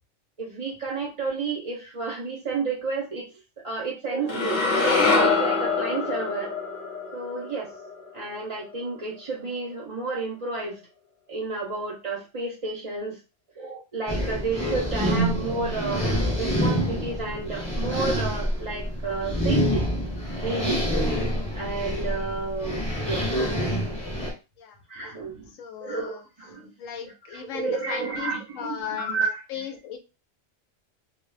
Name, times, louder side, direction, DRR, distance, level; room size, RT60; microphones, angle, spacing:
voice 1, 0.4-4.6 5.1-6.5 7.1-7.7 8.1-10.8 11.3-13.2 13.6-16.1 16.4-19.8 20.4-20.8 21.5-23.5 24.9-25.6 25.8-26.7 27.0-29.6, right 4 dB, 45° right, -2 dB, 0.4 m, -31 dB
sound 1, 4.3-8.5, left 3 dB, 50° left, 0.6 m, -25 dB
sound 2, 14.1-24.3, equal, 5° left, 0.7 m, -27 dB
voice 2, 25.5-26.2 26.8-30.0, left 8 dB, 90° left, 5 dB, 1.0 m, -37 dB
2.2 x 2.0 x 3.1 m, 0.29 s
omnidirectional pair, 1.3 m